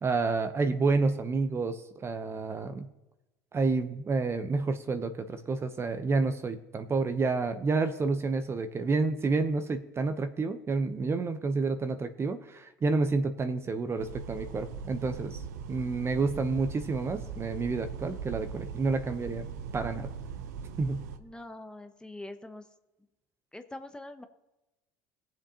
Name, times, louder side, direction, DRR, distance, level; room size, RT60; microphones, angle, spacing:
voice 1, 0.0-2.9 3.5-15.4 15.7-19.5 19.7-20.1 20.8-21.0, right 3 dB, 30° right, 9 dB, 0.8 m, -29 dB
sound 1, 14.0-21.2, right 6 dB, 85° right, 0.6 m, -40 dB
voice 2, 21.2-22.6 23.5-24.3, left 2 dB, 10° left, 8 dB, 0.8 m, -43 dB
18.5 x 7.4 x 2.9 m, 0.99 s
hypercardioid pair, 80°, 9 cm